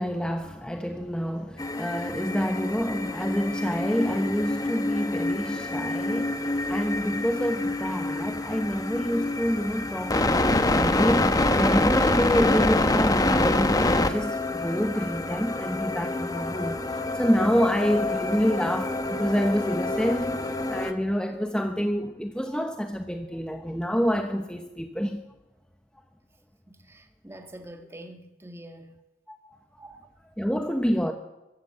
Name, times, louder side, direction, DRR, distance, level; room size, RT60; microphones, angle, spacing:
voice 1, 0.0-25.2 29.3-29.4 30.4-31.1, equal, 5° left, 1.0 m, -27 dB
sound 1, 1.6-20.9, left 2 dB, 20° left, 1.2 m, -26 dB
voice 2, 26.7-28.9 29.8-30.1, right 1 dB, 15° right, 1.5 m, -45 dB
23.0 x 14.5 x 7.8 m
head